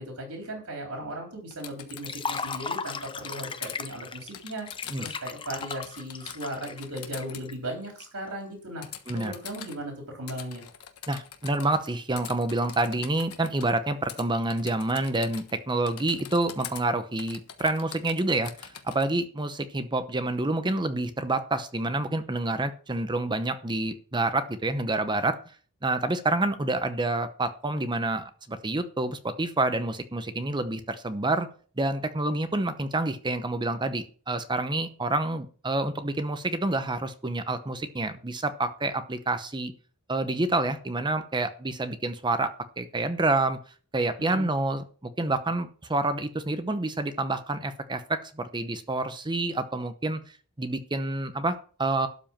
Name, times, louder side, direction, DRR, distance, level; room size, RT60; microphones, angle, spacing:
voice 1, 0.0-4.7 5.0-8.8 9.1-10.6 44.2-44.5, right 1 dB, 75° right, 1 dB, 3.7 m, -37 dB
Typing, 1.5-3.8 4.3-5.3 5.6-7.5 8.8-9.8 10.3-11.9 12.2-13.7 14.1-14.2 14.5-15.6 15.9-16.8 17.2-19.1, left 10 dB, 90° left, 1.3 m, -43 dB
Liquid, 1.9-8.1, left 5 dB, 25° left, 0.6 m, -37 dB
voice 2, 11.1-25.4 25.8-31.5 31.8-39.7 40.1-43.6 43.9-50.2 50.6-52.1, right 2 dB, 20° right, 10 dB, 0.8 m, -28 dB
12.5 x 5.0 x 7.3 m, 0.42 s
head